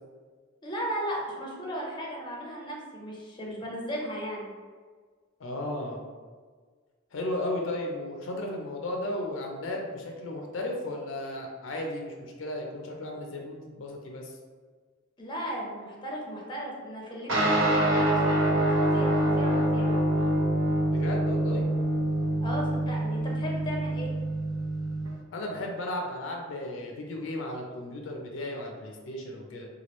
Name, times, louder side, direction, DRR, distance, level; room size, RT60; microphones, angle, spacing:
voice 1, 0.6-4.5 15.2-19.9 22.4-24.1, equal, 25° left, -2 dB, 0.6 m, -36 dB
voice 2, 5.4-6.0 7.1-14.3 20.9-21.7 25.3-29.7, left 1 dB, 75° left, 1 dB, 0.5 m, -35 dB
sound 1, 17.3-25.1, right 1 dB, 70° right, 0.8 m, -25 dB
2.9 x 2.3 x 3.0 m, 1.5 s
head